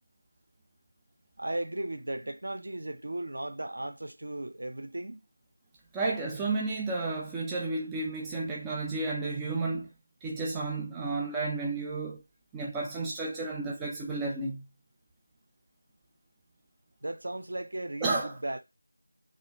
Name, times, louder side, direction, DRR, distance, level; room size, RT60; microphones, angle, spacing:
voice 1, 1.4-5.2 17.0-18.6, right 1 dB, 55° right, 0.8 m, -36 dB
voice 2, 5.9-9.9 10.2-12.2 12.5-14.6 18.0-18.3, right 3 dB, 5° right, 0.3 m, -32 dB
3.9 x 2.5 x 4.1 m
figure-of-eight pair, 175°, 0 cm